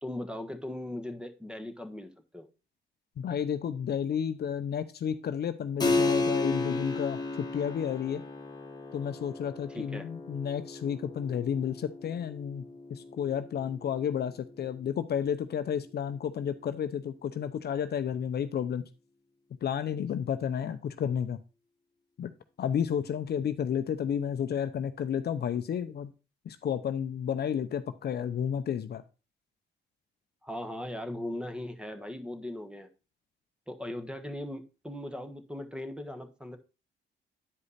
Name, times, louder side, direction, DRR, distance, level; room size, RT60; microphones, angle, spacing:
voice 1, 0.0-2.5 9.7-10.1 30.4-32.9 33.7-36.6, left 1 dB, 5° right, 1.3 m, -39 dB
voice 2, 3.2-8.2 8.9-18.8 19.6-21.4 22.2-22.3 22.6-26.1 26.5-29.0, left 8 dB, 55° left, 0.7 m, -31 dB
Keyboard (musical), 5.8-16.0, left 3 dB, 20° left, 1.5 m, -34 dB
9.6 x 5.0 x 4.2 m
cardioid pair, 90°, 20 cm